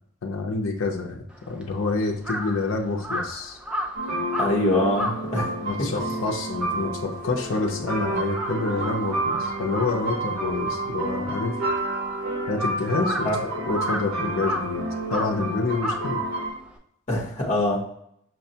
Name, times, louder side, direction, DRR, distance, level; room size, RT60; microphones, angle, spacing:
voice 1, 0.2-3.6 5.6-11.6 12.5-13.3 13.6-16.2, left 3 dB, 60° left, 0 dB, 0.5 m, -28 dB
Crow, 1.3-7.8 8.1-16.8, equal, 5° right, 0.3 m, -34 dB
sound 1, 3.9-16.5, right 2 dB, 85° right, 1.2 m, -30 dB
voice 2, 4.4-5.5 5.8-5.9 13.2-13.4 17.1-17.8, left 1 dB, 35° left, -2 dB, 0.8 m, -23 dB
5.7 x 2.1 x 2.7 m, 0.71 s
head